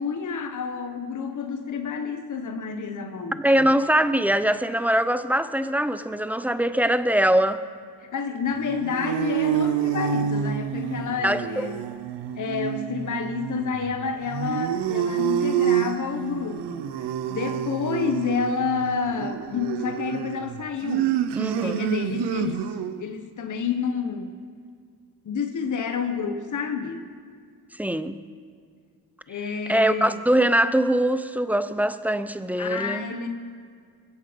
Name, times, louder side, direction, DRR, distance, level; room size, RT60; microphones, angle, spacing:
voice 1, 0.0-3.7 8.1-11.8 12.3-21.1 21.6-24.3 25.2-27.0 29.3-30.2 32.6-33.3, left 5 dB, 50° left, 6 dB, 1.1 m, -29 dB
voice 2, 3.4-7.6 11.2-11.7 21.4-21.8 27.8-28.1 29.7-33.1, right 1 dB, 5° right, 12 dB, 0.6 m, -22 dB
sound 1, 8.5-23.0, right 9 dB, 85° right, 0.7 m, -28 dB
22.0 x 8.1 x 5.2 m, 2.1 s
cardioid pair, 75°, 40 cm